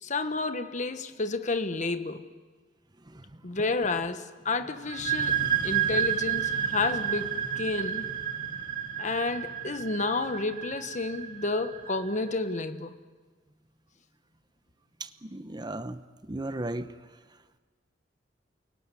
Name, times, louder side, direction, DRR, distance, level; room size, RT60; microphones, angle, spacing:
voice 1, 0.0-2.2 3.4-5.4 5.6-8.1 9.0-12.9, left 3 dB, 40° left, 9 dB, 1.3 m, -30 dB
sound 1, 4.8-12.3, right 8 dB, 45° right, 2.2 m, -31 dB
voice 2, 15.2-16.0 16.3-16.9, right 1 dB, 25° right, 11 dB, 0.8 m, -36 dB
29.0 x 18.0 x 9.9 m, 1.4 s
head